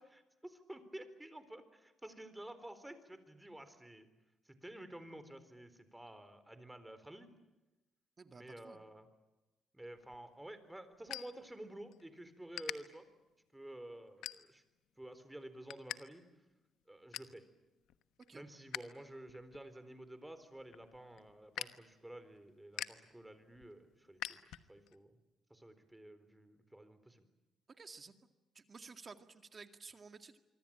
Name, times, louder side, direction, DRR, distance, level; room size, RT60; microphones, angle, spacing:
voice 1, 0.0-4.1 4.5-7.3 8.3-9.1 9.7-13.1 13.5-14.6 15.0-16.2 16.9-17.4 18.3-24.4 24.7-25.2 25.5-27.3, right 1 dB, 10° right, 11 dB, 4.0 m, -51 dB
voice 2, 8.2-8.8 18.3-18.4 27.8-28.1 28.5-30.4, right 4 dB, 35° right, 7 dB, 2.1 m, -53 dB
sound 1, 10.0-12.0 12.3-12.8 13.3-13.6 14.1-14.8 15.2-16.0 16.3-16.4 16.7-17.4 17.8-18.8 19.2-25.0, left 12 dB, 85° left, 1.1 m, -46 dB
26.0 x 24.5 x 8.9 m, 1.1 s
cardioid pair, 90°, 0 cm